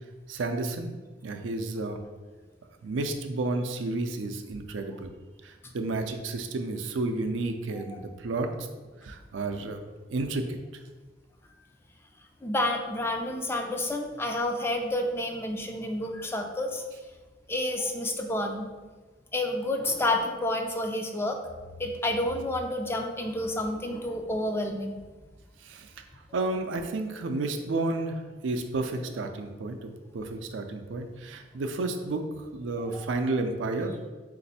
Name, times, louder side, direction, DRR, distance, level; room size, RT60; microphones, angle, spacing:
voice 1, 0.3-0.9 1.2-2.0 2.8-5.1 5.4-8.5 9.0-9.8 10.1-10.6 25.6-25.9 26.3-32.2 32.5-34.0, right 2 dB, 90° right, 6 dB, 0.4 m, -31 dB
voice 2, 12.4-16.8 17.5-18.7 19.3-21.4 21.8-25.0 32.9-33.1, left 1 dB, 15° left, 4 dB, 0.3 m, -29 dB
4.0 x 2.5 x 4.1 m, 1.3 s
head